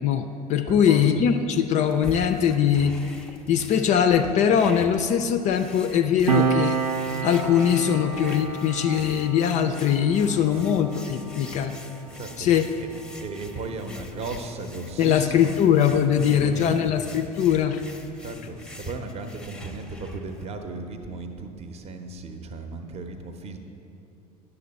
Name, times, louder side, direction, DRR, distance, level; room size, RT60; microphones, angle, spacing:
voice 1, 0.0-3.2 3.5-6.8 7.2-11.7 12.4-12.7 15.0-17.8, left 8 dB, 35° left, 8 dB, 0.4 m, -21 dB
voice 2, 0.7-1.0 10.5-10.7 12.1-12.9 13.2-15.6 16.1-17.0 18.2-23.6, right 3 dB, 30° right, 6 dB, 0.8 m, -36 dB
sound 1, 1.8-20.4, left 1 dB, 5° left, 0.7 m, -44 dB
Piano, 6.3-13.3 13.6-13.8, right 6 dB, 90° right, 0.5 m, -30 dB
9.9 x 6.9 x 4.1 m, 2.8 s
figure-of-eight pair, 70°, 20 cm